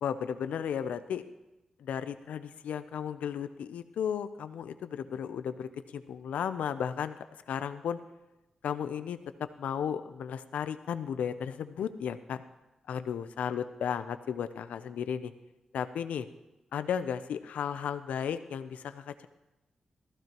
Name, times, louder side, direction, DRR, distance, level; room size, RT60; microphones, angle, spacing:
voice 1, 0.0-1.2 1.8-7.2 7.5-8.0 8.6-9.2 9.6-12.4 12.9-15.3 15.7-16.3 16.7-19.3, left 8 dB, 85° left, 12 dB, 0.6 m, -34 dB
14.5 x 14.5 x 3.0 m, 1.0 s
supercardioid pair, 45°, 2 cm